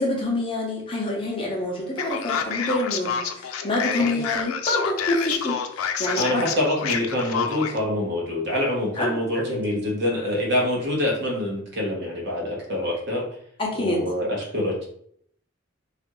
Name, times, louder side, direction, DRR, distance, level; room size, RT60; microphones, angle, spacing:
voice 1, 0.0-6.4 9.0-9.2 13.6-14.0, left 2 dB, 25° left, -2 dB, 0.7 m, -27 dB
Male speech man speaking, 2.0-7.8, left 7 dB, 90° left, 0.4 m, -28 dB
voice 2, 6.1-13.3 13.8-14.8, left 1 dB, 55° right, -2 dB, 0.9 m, -25 dB
3.2 x 2.4 x 3.0 m, 0.64 s
head